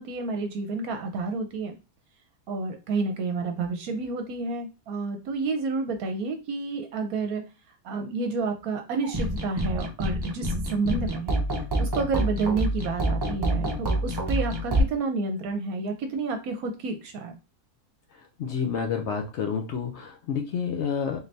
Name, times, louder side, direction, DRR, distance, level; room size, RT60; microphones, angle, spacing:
voice 1, 0.0-1.7 2.5-7.4 7.8-11.3 11.8-17.3, right 4 dB, 75° right, 5 dB, 1.0 m, -30 dB
sound 1, 9.0-14.8, right 1 dB, 30° right, 0.4 m, -27 dB
voice 2, 18.4-21.2, left 6 dB, 60° left, 3 dB, 0.7 m, -29 dB
3.9 x 3.2 x 2.6 m, 0.30 s
omnidirectional pair, 1.6 m